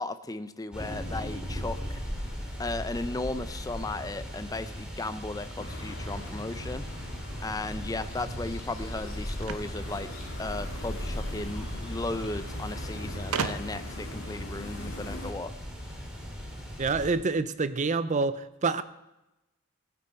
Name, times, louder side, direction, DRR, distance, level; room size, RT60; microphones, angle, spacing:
voice 1, 0.0-2.0 2.6-6.8 7.4-10.1 10.4-15.5, left 2 dB, 15° left, 11 dB, 0.5 m, -35 dB
sound 1, 0.7-17.1, equal, 5° right, 2.4 m, -38 dB
sound 2, 5.6-15.3, left 1 dB, 65° left, 2.6 m, -41 dB
sound 3, 9.4-10.8 11.9-12.0 12.2-12.3 13.3-14.0, right 5 dB, 90° right, 0.8 m, -34 dB
voice 2, 16.8-18.8, right 4 dB, 35° right, 14 dB, 0.5 m, -27 dB
16.0 x 9.5 x 4.4 m, 0.96 s
head